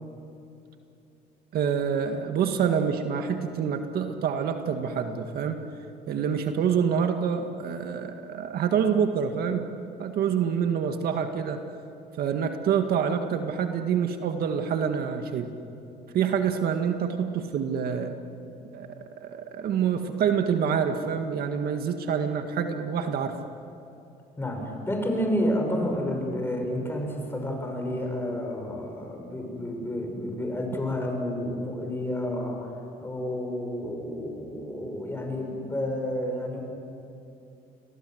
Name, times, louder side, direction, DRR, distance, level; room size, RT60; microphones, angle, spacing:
voice 1, 1.5-5.6 6.1-9.7 10.0-11.6 12.2-15.5 16.1-18.1 18.7-18.9 19.2-23.4, right 7 dB, 65° right, 6 dB, 1.9 m, -26 dB
voice 2, 24.4-32.7 33.0-36.6, left 1 dB, 15° left, 2 dB, 6.9 m, -30 dB
29.5 x 22.0 x 8.0 m, 2.8 s
cardioid pair, 110°, 17 cm